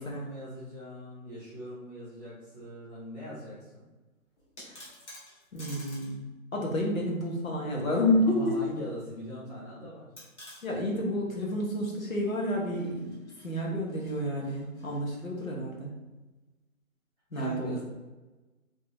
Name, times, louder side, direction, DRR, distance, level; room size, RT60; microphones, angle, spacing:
voice 1, 0.0-3.8 8.3-10.1 17.3-17.8, equal, 30° left, -11 dB, 0.7 m, -41 dB
sound 1, 4.4-6.2 6.5-6.6 8.0-8.7 9.0-9.1 10.2-10.7 12.6-15.5, left 1 dB, 50° left, 1.2 m, -51 dB
voice 2, 5.5-6.2 6.5-8.6 10.6-13.1 13.4-15.9 17.3-17.8, left 1 dB, 65° left, -2 dB, 1.2 m, -30 dB
3.0 x 2.4 x 2.9 m, 1.1 s
hypercardioid pair, 180°, 43 cm